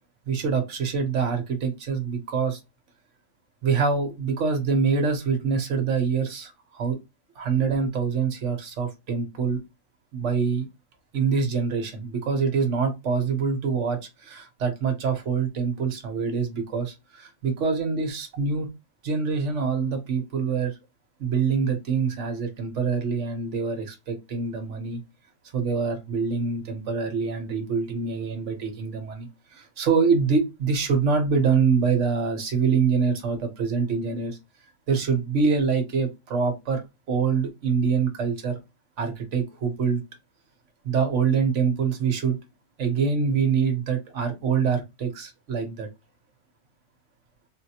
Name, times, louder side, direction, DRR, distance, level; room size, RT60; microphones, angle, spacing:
voice 1, 0.3-2.6 3.6-7.0 7.4-9.6 10.1-10.7 11.1-18.7 19.0-20.7 21.2-25.0 25.5-34.4 34.9-36.8 37.1-38.6 39.0-40.0 40.8-42.4 42.8-45.9, right 5 dB, 55° right, 4 dB, 1.0 m, -25 dB
3.9 x 2.0 x 2.8 m, 0.23 s
omnidirectional pair, 1.9 m